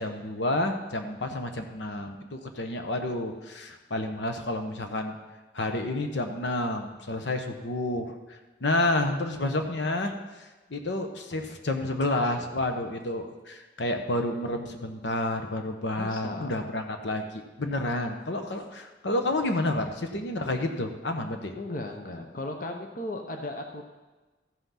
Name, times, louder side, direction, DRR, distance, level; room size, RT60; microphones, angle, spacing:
voice 1, 0.0-5.2 5.5-21.5, left 1 dB, 75° left, 5 dB, 1.0 m, -30 dB
voice 2, 16.0-16.5 21.5-23.8, left 2 dB, 50° left, 4 dB, 0.9 m, -36 dB
14.0 x 5.8 x 5.8 m, 1.2 s
head